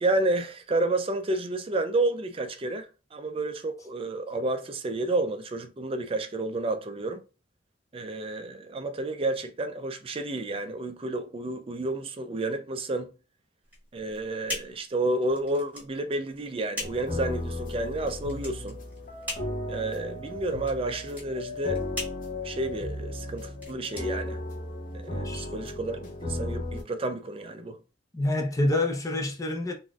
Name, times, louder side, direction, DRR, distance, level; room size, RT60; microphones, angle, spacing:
voice 1, 0.0-7.2 7.9-13.1 13.9-18.8 19.7-21.8 22.4-24.4 24.9-27.8, right 2 dB, 30° right, 0.4 m, -30 dB
sound 1, 13.6-24.9, left 1 dB, 10° right, 1.8 m, -41 dB
sound 2, 16.8-26.8, left 2 dB, 50° left, 0.8 m, -35 dB
voice 2, 28.1-29.8, left 1 dB, 20° left, 0.6 m, -27 dB
3.9 x 2.6 x 2.3 m
head